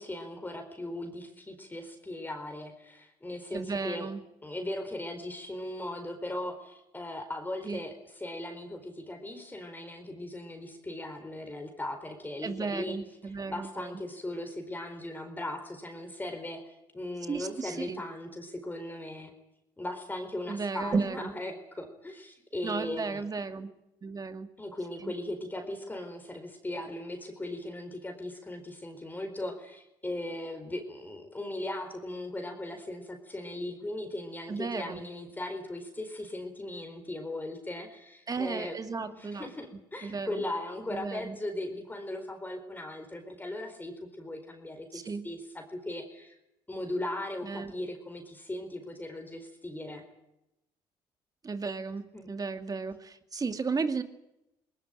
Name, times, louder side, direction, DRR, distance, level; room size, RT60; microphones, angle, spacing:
voice 1, 0.0-4.1 4.4-12.9 13.2-19.3 19.8-23.2 24.6-38.8 39.1-46.3 46.7-50.0 52.1-52.3, left 1 dB, 15° left, 5 dB, 4.5 m, -38 dB
voice 2, 3.5-4.2 7.7-7.8 12.4-13.9 17.3-18.0 20.5-21.3 22.6-23.7 24.0-24.5 25.0-25.1 34.5-35.0 38.3-39.5 40.0-40.4 40.9-41.4 44.9-45.3 47.4-47.7 51.4-54.0, right 4 dB, 30° right, 8 dB, 2.3 m, -34 dB
20.0 x 19.5 x 9.2 m, 0.87 s
supercardioid pair, 65°, 12 cm